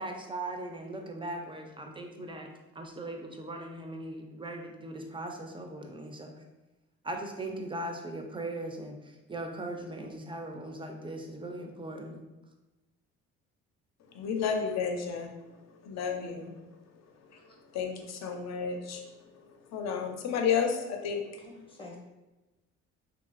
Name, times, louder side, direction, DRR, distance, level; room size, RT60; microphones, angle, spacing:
voice 1, 0.0-6.3 7.0-12.3, right 1 dB, 15° right, 3 dB, 0.4 m, -39 dB
voice 2, 14.1-15.4 15.8-16.5 17.7-19.0 19.7-21.2, left 6 dB, 55° left, 3 dB, 0.6 m, -31 dB
voice 3, 21.4-22.0, left 2 dB, 15° left, 0 dB, 0.7 m, -49 dB
3.0 x 2.4 x 2.5 m, 1.1 s
supercardioid pair, 70°, 31 cm